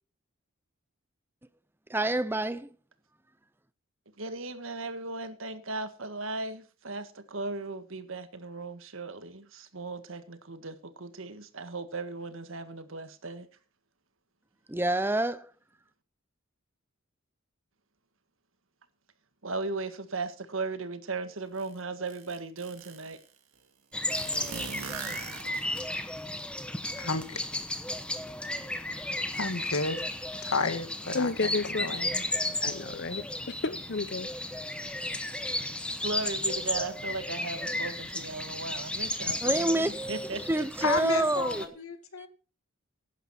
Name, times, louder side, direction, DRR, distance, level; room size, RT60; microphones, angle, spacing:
voice 1, 1.9-2.7 14.7-15.5 39.4-39.9 40.3-41.6, right 1 dB, 10° right, 0.5 m, -27 dB
voice 2, 4.2-13.5 19.4-23.2 36.0-40.7, right 3 dB, 70° right, 1.6 m, -37 dB
sound 1, 21.6-21.7 22.1-23.2 24.1-25.9, right 6 dB, 85° right, 2.6 m, -40 dB
sound 2, 23.9-41.7, left 1 dB, 5° left, 1.0 m, -34 dB
voice 3, 27.0-27.4 29.3-30.0 30.4-32.2 40.8-42.3, left 4 dB, 80° left, 2.0 m, -32 dB
voice 4, 31.1-31.9 32.6-34.3, left 3 dB, 50° left, 0.8 m, -31 dB
15.5 x 11.0 x 4.3 m
head